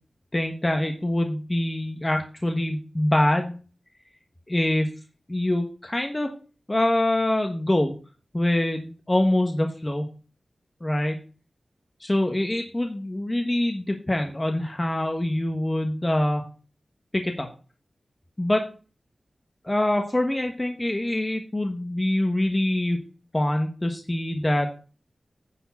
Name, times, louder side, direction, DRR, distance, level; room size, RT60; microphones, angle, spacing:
voice 1, 0.3-3.5 4.5-4.9 5.3-6.3 6.7-7.9 8.3-10.1 10.8-11.2 12.0-16.4 17.1-17.5 18.4-18.6 19.6-23.0 23.3-24.7, left 1 dB, 25° left, 4 dB, 1.2 m, -24 dB
10.0 x 4.5 x 5.9 m, 0.36 s
wide cardioid pair, 75°, 0 cm